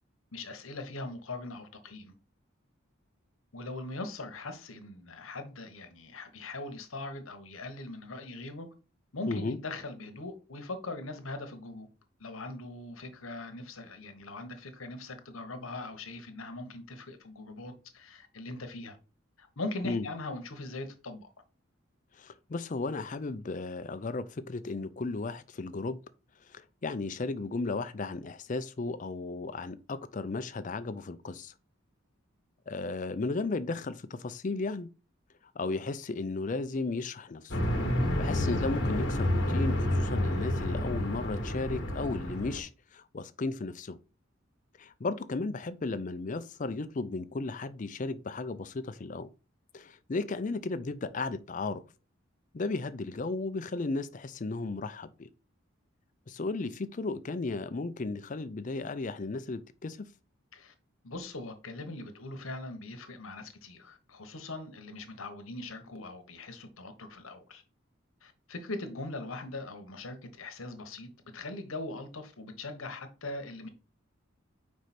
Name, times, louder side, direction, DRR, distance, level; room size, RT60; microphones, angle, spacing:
voice 1, 0.3-2.1 3.5-8.7 9.1-11.9 12.2-19.0 19.4-21.3 60.5-60.7 61.0-67.6 68.2-73.7, left 2 dB, 80° left, 1.1 m, -41 dB
voice 2, 9.3-9.6 19.8-20.1 22.1-26.0 26.4-31.5 32.7-34.9 35.5-37.6 38.2-44.0 44.8-49.3 49.7-51.8 52.5-55.3 56.3-60.1, left 3 dB, 40° left, 0.4 m, -35 dB
sound 1, 37.5-42.6, left 1 dB, 55° left, 1.4 m, -29 dB
5.1 x 4.8 x 4.2 m
head